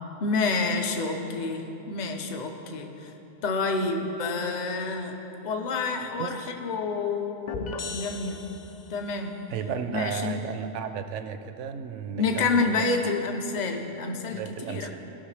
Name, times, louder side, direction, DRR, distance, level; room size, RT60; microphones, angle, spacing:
voice 1, 0.2-3.1 3.4-5.2 5.4-8.5 8.9-9.4 9.9-10.4 12.2-14.9, left 3 dB, 45° left, 4 dB, 0.7 m, -28 dB
sound 1, 7.5-9.2, left 5 dB, 70° left, 0.4 m, -37 dB
voice 2, 9.5-12.8 14.3-15.0, right 7 dB, 70° right, 9 dB, 0.8 m, -34 dB
16.5 x 5.7 x 3.3 m, 3.0 s
omnidirectional pair, 1.3 m